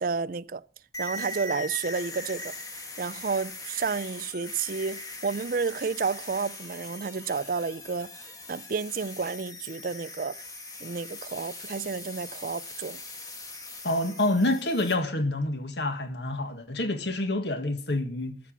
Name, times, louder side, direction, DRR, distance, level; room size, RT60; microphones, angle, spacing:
voice 1, 0.0-0.6 1.0-2.5 3.0-10.4 10.8-13.0, right 5 dB, 50° right, 0.5 m, -31 dB
sound 1, 0.9-14.9, left 2 dB, 20° left, 2.2 m, -41 dB
voice 2, 13.8-18.4, left 1 dB, 75° left, 1.7 m, -27 dB
13.0 x 7.2 x 7.1 m
head